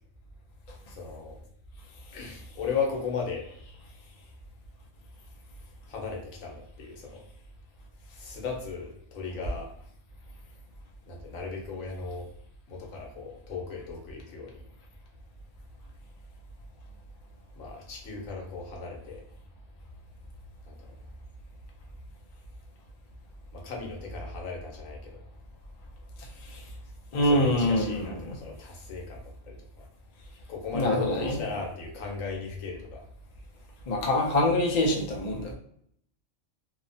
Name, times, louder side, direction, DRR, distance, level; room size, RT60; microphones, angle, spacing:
voice 1, 0.9-1.4 2.1-3.5 5.9-7.2 8.2-9.7 11.1-12.3 12.7-14.6 17.6-19.2 20.7-20.8 23.5-25.2 27.1-29.6 30.5-33.0, left 5 dB, 85° left, 0 dB, 1.1 m, -36 dB
voice 2, 27.1-28.4 30.7-31.4 33.9-35.5, left 1 dB, 55° left, 0 dB, 0.4 m, -25 dB
2.8 x 2.1 x 2.6 m, 0.68 s
omnidirectional pair, 1.4 m